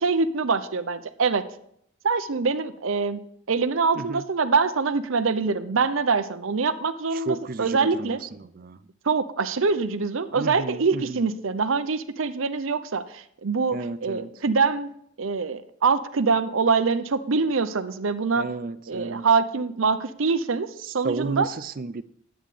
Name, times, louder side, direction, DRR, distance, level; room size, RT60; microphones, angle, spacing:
voice 1, 0.0-1.4 2.0-3.2 3.5-8.2 9.0-14.9 15.2-18.5 18.9-21.5, right 4 dB, 75° right, 12 dB, 0.7 m, -24 dB
voice 2, 7.1-8.8 10.3-11.3 13.7-14.4 18.4-19.3 20.8-22.0, right 3 dB, 40° right, 15 dB, 0.4 m, -33 dB
11.0 x 8.9 x 3.3 m, 0.69 s
head